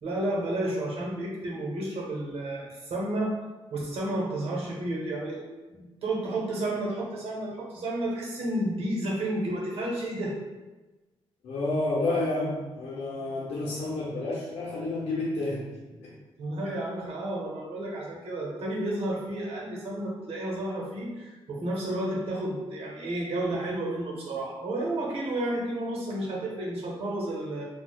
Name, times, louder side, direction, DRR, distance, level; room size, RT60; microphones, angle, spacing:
voice 1, 0.0-3.3 3.7-5.4 5.7-10.3 16.4-27.6, right 1 dB, 75° right, -3 dB, 0.9 m, -31 dB
voice 2, 11.4-15.7 16.0-16.1, left 2 dB, 85° left, -6 dB, 0.6 m, -30 dB
4.1 x 2.3 x 2.3 m, 1.2 s
wide cardioid pair, 135°, 10 cm